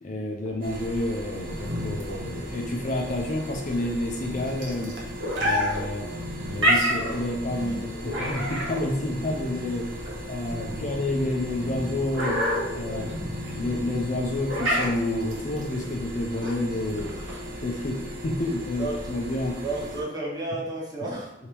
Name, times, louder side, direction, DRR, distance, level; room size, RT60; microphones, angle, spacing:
voice 1, 0.0-4.9 5.4-6.1 6.5-9.9 10.3-12.4 12.7-13.1 13.5-17.2 17.6-19.6, left 1 dB, 40° left, 1 dB, 0.5 m, -29 dB
sound 1, 0.6-20.0, equal, 45° right, 0.8 m, -38 dB
sound 2, 1.5-17.5, equal, 80° right, 1.1 m, -30 dB
voice 2, 19.6-21.3, right 2 dB, 20° right, -5 dB, 1.1 m, -33 dB
3.4 x 2.8 x 4.4 m, 0.87 s
head